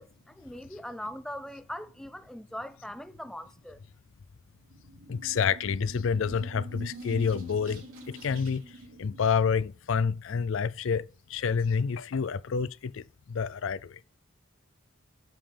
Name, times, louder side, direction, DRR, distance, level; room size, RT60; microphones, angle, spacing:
voice 1, 0.0-3.8, left 1 dB, ahead, 0.4 m, -41 dB
sound 1, 4.5-9.9, right 2 dB, 80° right, 2.8 m, -46 dB
voice 2, 5.1-8.6 9.0-14.0, left 6 dB, 65° left, 0.4 m, -28 dB
8.8 x 7.3 x 3.4 m
head